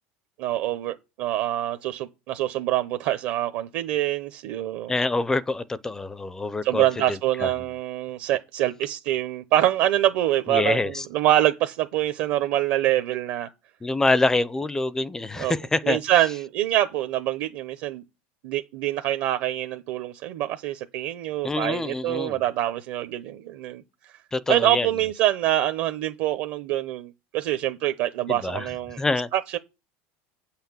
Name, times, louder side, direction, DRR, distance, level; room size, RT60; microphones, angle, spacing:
voice 1, 0.4-4.9 6.6-13.5 15.4-15.5 15.8-18.0 18.4-23.8 24.5-29.0 29.3-29.6, right 13 dB, 55° right, 0.8 m, -25 dB
voice 2, 4.9-7.5 10.5-11.0 13.8-16.0 21.4-22.4 24.3-24.9 28.3-28.7 29.0-29.3, left 2 dB, 10° left, 0.4 m, -26 dB
8.5 x 5.8 x 7.4 m
supercardioid pair, 160°, 6 cm